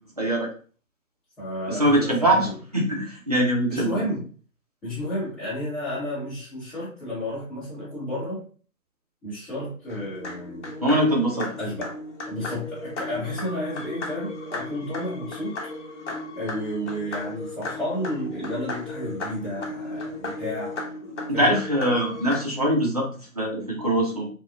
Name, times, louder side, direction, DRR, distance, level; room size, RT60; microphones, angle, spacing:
voice 1, 0.2-0.5 1.7-2.5 2.7-4.0 10.8-11.5 21.3-24.3, right 1 dB, 30° right, -2 dB, 0.4 m, -22 dB
voice 2, 1.4-2.5 3.7-4.3 4.8-8.4 9.2-10.7 11.6-11.9 12.3-15.6 16.3-20.8 21.3-21.5, left 1 dB, 5° left, -16 dB, 0.8 m, -32 dB
sound 1, 9.9-22.4, left 2 dB, 55° left, 0.8 m, -35 dB
2.9 x 2.0 x 2.3 m, 0.41 s
figure-of-eight pair, 145°, 42 cm